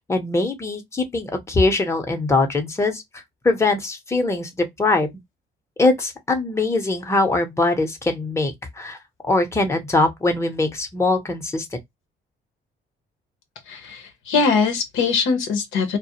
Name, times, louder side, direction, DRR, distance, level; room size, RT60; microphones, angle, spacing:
voice 1, 0.1-5.1 5.8-9.0 9.2-11.7, left 2 dB, 15° left, 0.7 m, -22 dB
voice 2, 13.7-16.0, left 5 dB, 85° left, 0.7 m, -22 dB
2.3 x 2.0 x 2.8 m
cardioid pair, 90°, 20 cm